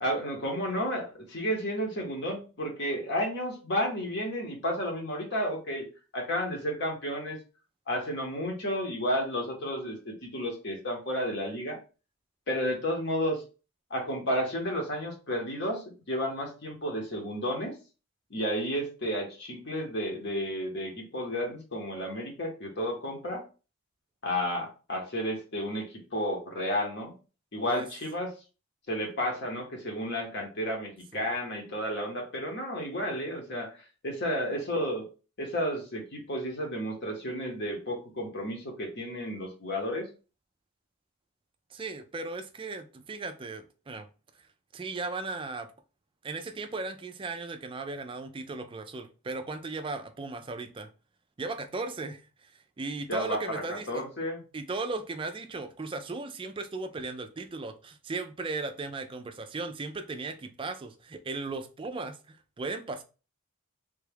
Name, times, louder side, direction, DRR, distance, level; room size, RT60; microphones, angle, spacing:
voice 1, 0.0-7.4 7.9-11.8 12.5-13.4 13.9-17.8 18.3-23.4 24.2-27.1 27.5-28.3 28.9-35.1 35.4-40.1 53.1-54.4, equal, 55° left, 0.9 m, -32 dB
voice 2, 41.7-44.1 44.7-45.7 46.2-50.9 51.4-54.0 54.5-63.0, right 3 dB, 25° right, 0.3 m, -37 dB
3.4 x 2.3 x 3.4 m
head